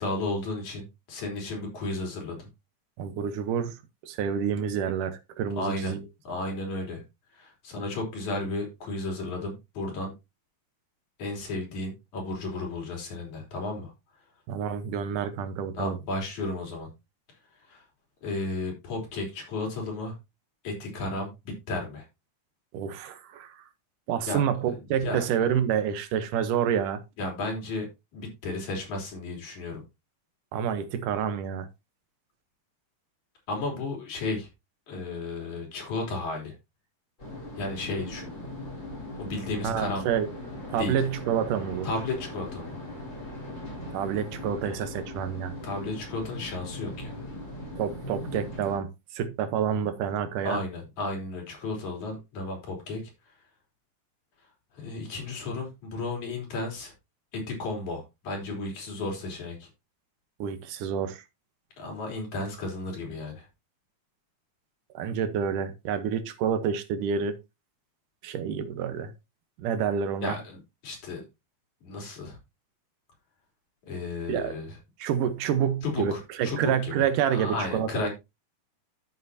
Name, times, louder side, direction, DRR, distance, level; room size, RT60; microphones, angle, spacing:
voice 1, 0.0-2.5 5.5-5.9 6.2-7.0 7.3-10.1 11.2-13.9 15.7-16.9 17.7-17.8 18.2-20.2 20.6-22.1 24.3-24.5 25.0-25.2 27.2-27.9 28.1-29.8 33.5-34.5 34.9-36.6 37.6-38.3 39.2-40.0 40.8-41.0 41.8-42.8 45.6-47.2 50.4-53.0 54.7-56.9 57.3-59.7 61.8-63.5 70.2-71.2 71.8-72.4 73.8-74.8 75.8-76.9 77.4-78.1, left 2 dB, 65° left, 4.8 m, -33 dB
voice 2, 3.0-3.8 4.0-6.1 14.5-16.0 22.7-23.6 24.1-27.0 30.5-31.7 39.6-40.3 40.7-41.9 43.9-45.6 47.8-50.6 60.4-61.2 64.9-67.4 68.2-69.1 69.6-70.3 74.3-74.5 75.0-78.1, right 8 dB, 85° right, 2.6 m, -28 dB
sound 1, 37.2-48.8, left 1 dB, 20° left, 5.3 m, -39 dB
13.0 x 6.7 x 2.7 m
omnidirectional pair, 3.6 m